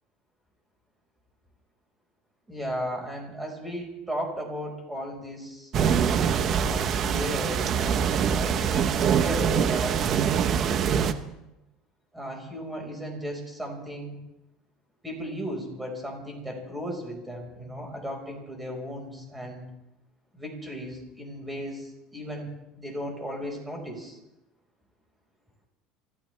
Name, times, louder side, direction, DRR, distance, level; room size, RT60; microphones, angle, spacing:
voice 1, 2.5-5.7 6.5-10.1 12.1-14.2 15.0-19.7 20.3-22.5 22.8-24.2, equal, 5° right, 1 dB, 5.1 m, -35 dB
sound 1, 5.7-11.1, right 7 dB, 40° right, 1.0 m, -24 dB
29.0 x 14.5 x 3.4 m, 0.93 s
cardioid pair, 135°, 0 cm